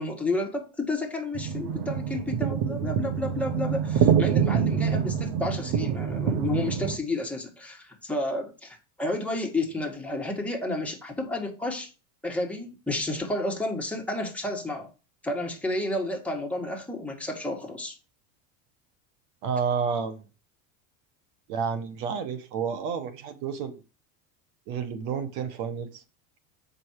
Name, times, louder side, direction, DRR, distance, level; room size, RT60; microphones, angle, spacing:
voice 1, 0.0-11.9 12.2-14.9 15.2-18.0, left 2 dB, 5° left, 2.0 m, -31 dB
sound 1, 1.3-7.0, right 7 dB, 55° right, 1.2 m, -26 dB
voice 2, 19.4-20.2 21.5-23.7 24.7-26.0, right 6 dB, 70° right, 1.5 m, -30 dB
7.8 x 5.5 x 4.8 m
supercardioid pair, 140°, 39 cm